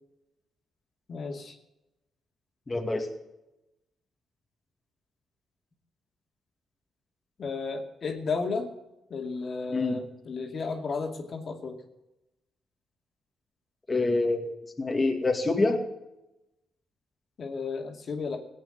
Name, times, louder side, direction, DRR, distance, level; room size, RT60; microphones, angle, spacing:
voice 1, 1.1-1.6 7.4-8.7 9.1-11.8 17.4-18.4, left 4 dB, 50° left, 2 dB, 2.5 m, -33 dB
voice 2, 2.7-3.1 9.7-10.0 13.9-14.5 14.8-15.8, left 3 dB, 25° left, 1 dB, 2.3 m, -26 dB
17.0 x 8.2 x 7.8 m, 0.94 s
cardioid pair, 80°, 0 cm